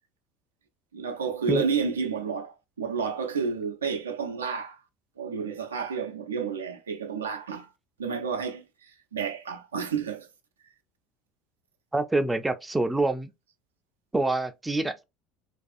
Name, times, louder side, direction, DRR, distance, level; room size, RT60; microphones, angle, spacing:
voice 1, 0.9-4.8 5.2-7.7 8.0-8.6 9.1-10.3, right 5 dB, 85° right, 0.4 m, -30 dB
voice 2, 11.9-13.3 14.1-15.0, right 2 dB, 10° right, 0.4 m, -26 dB
2.4 x 2.3 x 2.4 m
hypercardioid pair, 65°, 0 cm